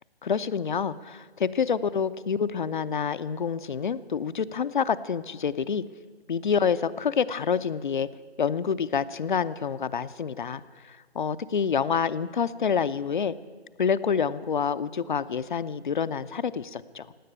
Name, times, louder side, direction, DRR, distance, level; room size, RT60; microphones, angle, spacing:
voice 1, 0.2-5.8 6.3-8.1 8.4-13.3 13.8-17.1, left 6 dB, 50° left, 15 dB, 0.6 m, -27 dB
17.0 x 9.3 x 9.2 m, 1.5 s
figure-of-eight pair, 155°, 32 cm